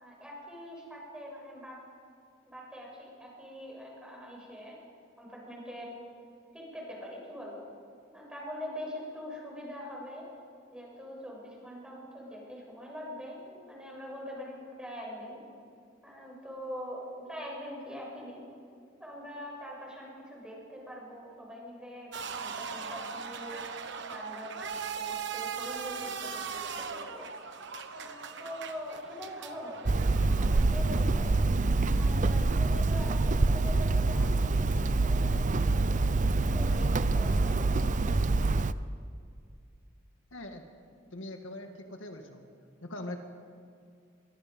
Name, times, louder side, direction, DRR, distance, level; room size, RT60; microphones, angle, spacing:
voice 1, 0.0-1.8 2.5-4.8 5.2-5.9 6.5-7.7 8.1-10.2 10.7-15.4 16.0-18.5 19.0-23.6 24.1-27.3 27.9-30.1 30.4-31.4 32.0-36.0 36.5-38.1, equal, 5° right, -3 dB, 7.2 m, -43 dB
sound 1, 22.1-30.6, right 6 dB, 65° right, 1.3 m, -39 dB
Hammer, 29.9-38.7, right 3 dB, 40° right, 0.6 m, -26 dB
voice 2, 40.3-40.7 41.1-42.5 42.8-43.2, left 1 dB, 80° left, 4 dB, 2.0 m, -41 dB
26.0 x 24.0 x 5.4 m, 2.3 s
head